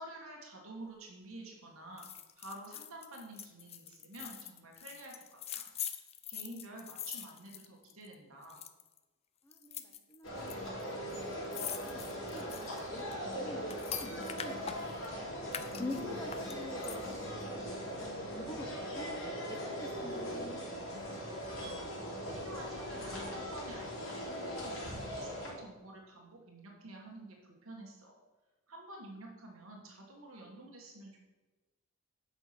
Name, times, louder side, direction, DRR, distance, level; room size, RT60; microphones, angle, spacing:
voice 1, 0.0-2.1 2.3-5.1 5.5-5.6 6.3-8.6 15.7-16.1 22.3-28.2 28.7-31.2, right 1 dB, 85° right, 0 dB, 1.7 m, -49 dB
sound 1, 2.0-8.1 8.4-9.0 9.5-10.5 10.8-10.9 11.1-15.1 15.5-17.2 17.6-17.7, left 9 dB, 30° left, 0.5 m, -44 dB
voice 2, 9.4-10.9 11.2-15.3 15.8-21.6, left 1 dB, 15° left, 3 dB, 1.0 m, -47 dB
sound 2, 10.2-25.5, equal, 75° left, 3.1 m, -40 dB
8.0 x 5.7 x 5.9 m, 1.2 s
head